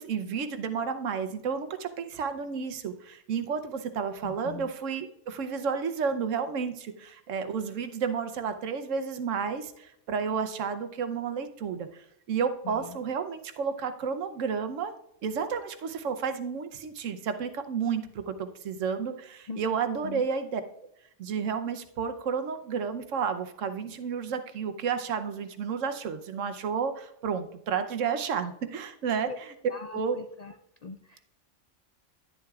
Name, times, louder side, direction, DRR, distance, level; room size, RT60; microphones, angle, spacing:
voice 1, 0.0-14.9 15.2-20.6 21.2-29.5 29.9-30.2, right 6 dB, 85° right, 8 dB, 1.1 m, -31 dB
voice 2, 4.2-4.7 12.7-12.9 19.5-19.6 20.0-20.2 29.2-29.4 29.7-30.5 30.8-31.2, left 4 dB, 65° left, 6 dB, 0.4 m, -40 dB
10.5 x 10.5 x 2.4 m, 0.77 s
omnidirectional pair, 1.3 m